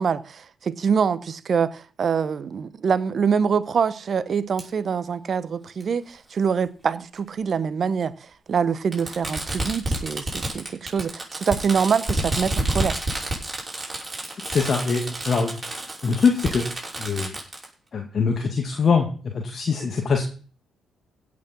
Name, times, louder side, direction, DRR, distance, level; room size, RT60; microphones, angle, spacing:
voice 1, 0.0-13.0, right 6 dB, 50° right, 1.0 m, -25 dB
Fireworks, 4.6-4.7 5.8-5.9 7.2-7.3 8.9-17.6, right 1 dB, 20° right, 6.0 m, -29 dB
voice 2, 14.5-15.6 16.0-16.7 17.0-17.3 17.9-19.1 19.3-20.3, left 5 dB, 45° left, 2.1 m, -22 dB
16.5 x 6.3 x 6.0 m
hypercardioid pair, 45°, 0 cm